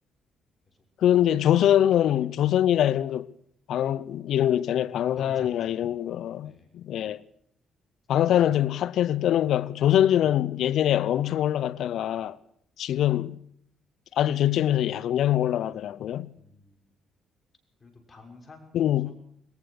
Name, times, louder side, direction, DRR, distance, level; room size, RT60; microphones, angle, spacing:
voice 1, 1.0-3.3 3.7-7.2 8.1-12.4 12.8-13.4 14.1-16.3 18.7-19.1, left 11 dB, 75° left, 0.8 m, -23 dB
voice 2, 5.2-5.7 6.4-6.7 16.4-16.8 17.8-19.1, left 3 dB, 30° left, 6.4 m, -50 dB
21.5 x 19.0 x 6.6 m
cardioid pair, 85°, 0 cm